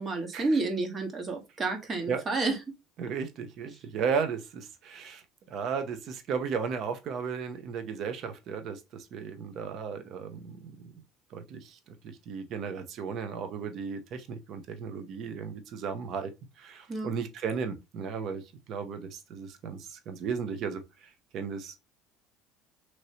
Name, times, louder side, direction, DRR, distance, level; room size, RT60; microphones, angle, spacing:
voice 1, 0.0-2.6 16.9-17.1, right 3 dB, 35° right, 1.2 m, -30 dB
voice 2, 3.0-5.2 5.5-10.9 11.3-16.3 16.6-18.4 18.7-21.8, right 6 dB, 55° right, 0.7 m, -35 dB
3.0 x 2.9 x 2.7 m
supercardioid pair, 90°, 0 cm